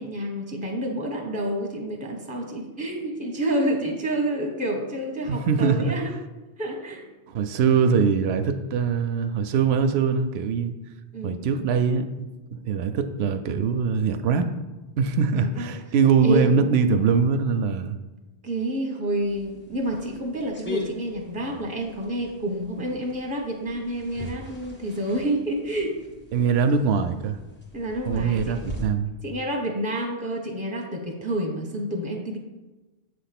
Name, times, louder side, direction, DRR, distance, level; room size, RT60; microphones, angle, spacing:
voice 1, 0.0-6.1 6.6-7.1 11.1-11.4 15.3-15.7 16.2-16.5 18.4-26.0 27.7-28.8 29.2-32.4, right 1 dB, 10° right, 1 dB, 0.9 m, -29 dB
voice 2, 5.3-6.0 7.3-10.7 11.2-14.5 15.0-18.0 26.3-27.4 28.1-29.1, right 6 dB, 80° right, 8 dB, 0.8 m, -22 dB
sound 1, 19.2-28.8, left 1 dB, 10° left, 1.0 m, -41 dB
7.6 x 3.4 x 5.8 m, 1.1 s
omnidirectional pair, 1.1 m